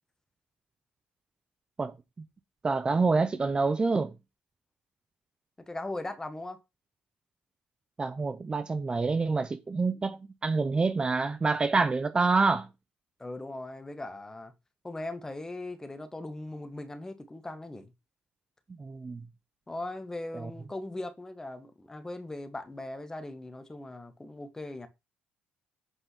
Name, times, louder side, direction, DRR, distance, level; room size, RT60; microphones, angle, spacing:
voice 1, 2.6-4.1 8.0-12.7 18.8-19.2 20.3-20.5, right 4 dB, 25° right, 0.8 m, -27 dB
voice 2, 5.6-6.6 13.2-14.5 14.8-17.9 19.7-24.9, left 2 dB, 15° left, 1.8 m, -39 dB
8.3 x 5.3 x 6.0 m
supercardioid pair, 85°, 3 cm